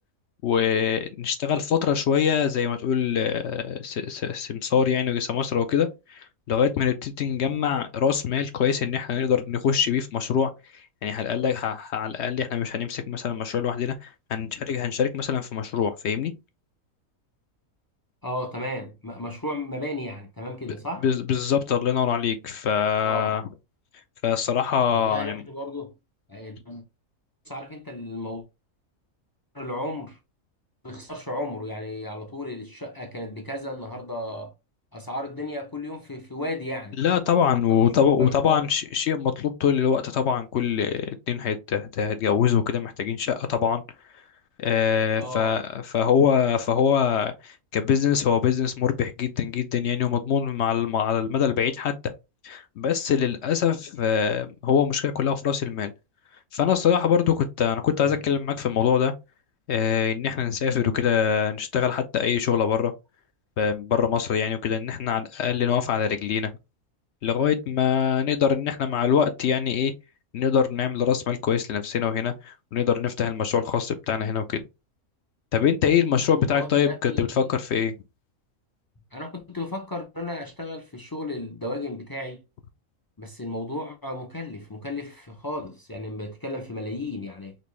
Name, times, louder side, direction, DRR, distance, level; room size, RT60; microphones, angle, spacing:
voice 1, 0.4-10.5 11.0-16.3 21.0-23.4 24.2-25.4 37.0-43.8 44.6-52.1 52.4-55.9 56.5-59.1 59.7-62.9 63.6-66.5 67.2-69.9 70.3-74.6 75.5-77.9, left 7 dB, 65° left, 0.7 m, -24 dB
voice 2, 18.2-21.1 23.0-23.4 24.9-26.0 26.3-26.8 27.5-28.4 29.5-30.2 30.8-34.5 34.9-37.0 37.7-38.7 45.2-45.6 76.4-77.5 79.1-82.4 83.2-87.6, left 1 dB, 30° left, 0.4 m, -34 dB
4.3 x 3.1 x 3.1 m
omnidirectional pair, 1.5 m